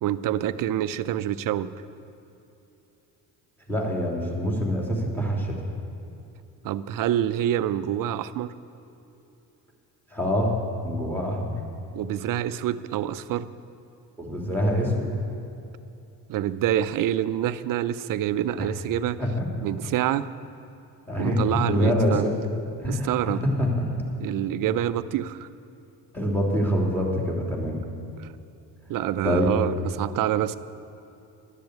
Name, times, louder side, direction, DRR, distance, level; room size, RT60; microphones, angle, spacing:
voice 1, 0.0-1.7 6.6-8.5 11.9-13.5 16.3-19.2 19.6-20.3 21.2-22.2 22.9-23.4 24.2-25.5 28.2-28.3 28.9-30.6, right 11 dB, 45° right, 15 dB, 0.6 m, -26 dB
voice 2, 3.7-5.6 10.1-10.6 10.8-11.6 14.2-15.1 18.6-18.7 19.2-19.5 21.1-22.3 22.8-23.1 23.4-23.9 26.1-27.8 29.2-29.5, equal, 5° left, -1 dB, 3.0 m, -25 dB
10.5 x 8.0 x 9.6 m, 2.8 s
hypercardioid pair, 60°, 49 cm